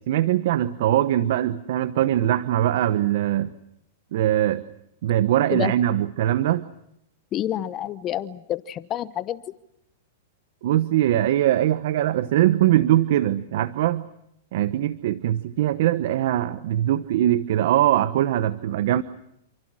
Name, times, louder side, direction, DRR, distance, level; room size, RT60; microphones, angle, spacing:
voice 1, 0.0-3.5 4.1-4.6 5.0-6.6 10.6-14.0 14.5-19.0, right 12 dB, 65° right, 14 dB, 1.0 m, -21 dB
voice 2, 7.3-9.4, left 12 dB, 30° left, 14 dB, 1.0 m, -28 dB
28.5 x 28.5 x 6.2 m, 0.76 s
hypercardioid pair, 130°, 0 cm